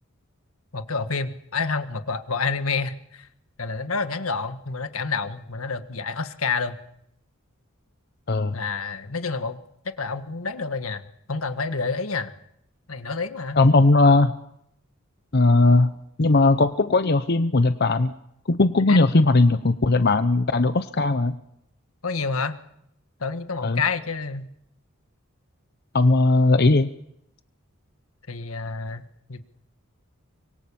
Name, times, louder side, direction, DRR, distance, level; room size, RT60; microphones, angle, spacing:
voice 1, 0.7-3.3 3.6-6.8 8.5-9.6 9.8-11.0 11.3-12.3 12.9-13.6 18.9-19.1 22.0-22.6 23.2-24.5 28.3-29.4, left 4 dB, 85° left, 9 dB, 1.7 m, -28 dB
voice 2, 8.3-8.6 13.6-14.3 15.3-15.9 16.2-18.1 18.5-21.3 23.6-23.8 25.9-26.9, left 2 dB, 50° left, 10 dB, 0.9 m, -18 dB
25.0 x 23.0 x 7.1 m, 0.77 s
head